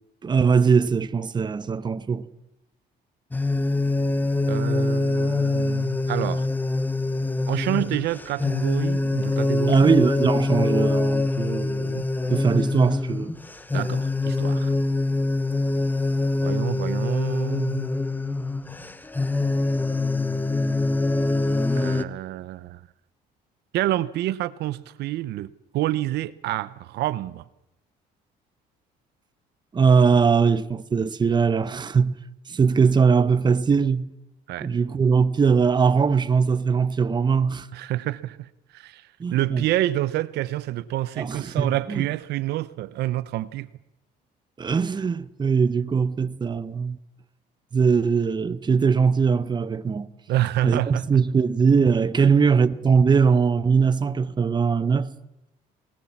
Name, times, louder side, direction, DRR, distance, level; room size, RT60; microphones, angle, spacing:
voice 1, 0.2-2.3 9.7-13.4 29.7-32.2 32.5-34.1 34.6-37.7 39.2-39.6 41.2-42.1 44.6-47.0 47.7-50.1 50.6-55.1, right 5 dB, 25° right, 0.9 m, -21 dB
sound 1, 3.3-22.0, left 2 dB, 10° left, 1.0 m, -24 dB
voice 2, 4.5-6.5 7.5-9.9 13.7-14.7 16.4-17.9 21.7-22.8 23.7-27.4 34.5-34.7 37.7-43.7 50.3-51.0, right 15 dB, 80° right, 0.8 m, -28 dB
23.5 x 19.0 x 7.3 m
cardioid pair, 110°, 17 cm